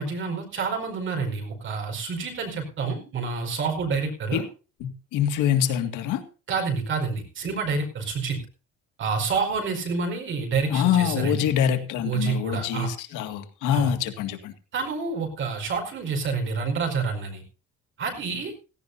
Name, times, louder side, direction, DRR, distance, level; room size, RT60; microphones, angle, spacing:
voice 1, 0.0-4.4 6.5-8.4 9.0-11.5 12.0-12.9 13.7-13.9 14.7-17.4 18.0-18.5, right 4 dB, 40° right, 5.0 m, -28 dB
voice 2, 4.8-6.2 10.7-14.5, left 9 dB, 75° left, 2.1 m, -25 dB
17.0 x 16.5 x 2.7 m
cardioid pair, 165°, 31 cm